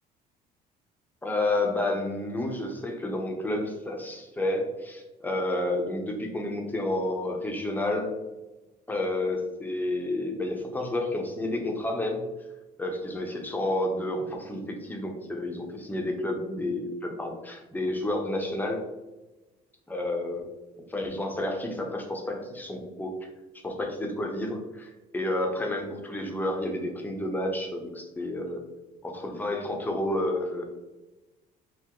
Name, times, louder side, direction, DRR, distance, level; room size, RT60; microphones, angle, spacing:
voice 1, 1.2-8.1 8.9-12.2 12.8-18.8 19.9-20.5 20.9-23.2 23.6-28.6 29.0-30.6, left 1 dB, 10° left, 1 dB, 0.7 m, -30 dB
4.6 x 2.0 x 3.7 m, 1.1 s
cardioid pair, 110°, 17 cm